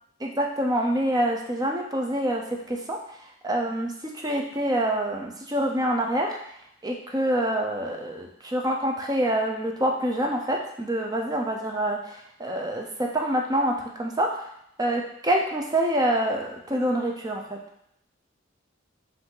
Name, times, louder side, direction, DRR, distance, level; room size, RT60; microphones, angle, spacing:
voice 1, 0.2-3.0 3.4-3.9 4.2-6.4 6.8-14.3 14.8-17.6, right 1 dB, 20° right, 1 dB, 0.5 m, -26 dB
5.2 x 2.6 x 3.8 m, 0.75 s
head